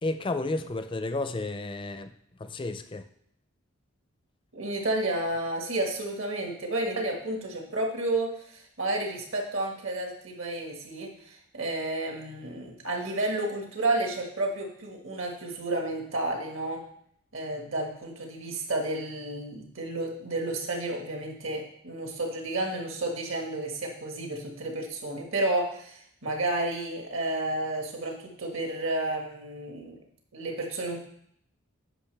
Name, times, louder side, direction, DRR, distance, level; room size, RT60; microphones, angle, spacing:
voice 1, 0.0-2.1 2.4-3.1, left 2 dB, 25° left, 10 dB, 0.4 m, -32 dB
voice 2, 4.5-16.8 17.3-30.0 30.3-31.0, right 2 dB, 70° right, 1 dB, 1.7 m, -31 dB
10.0 x 5.9 x 3.3 m, 0.68 s
head